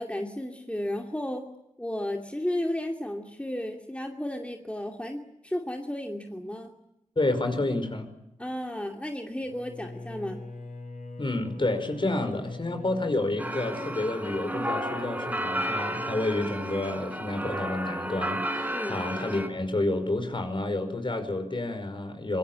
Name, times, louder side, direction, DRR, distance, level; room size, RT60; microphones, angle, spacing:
voice 1, 0.0-1.4 1.8-6.7 8.4-10.4 18.7-19.0, left 1 dB, 10° left, 3 dB, 2.5 m, -33 dB
voice 2, 7.1-8.1 11.2-22.4, left 2 dB, 40° left, 8 dB, 5.1 m, -29 dB
Bowed string instrument, 9.4-14.8, left 2 dB, 85° left, 7.6 m, -43 dB
sound 1, 13.4-19.5, equal, 10° right, 4.5 m, -32 dB
26.0 x 22.5 x 8.8 m, 0.85 s
wide cardioid pair, 65°, 13 cm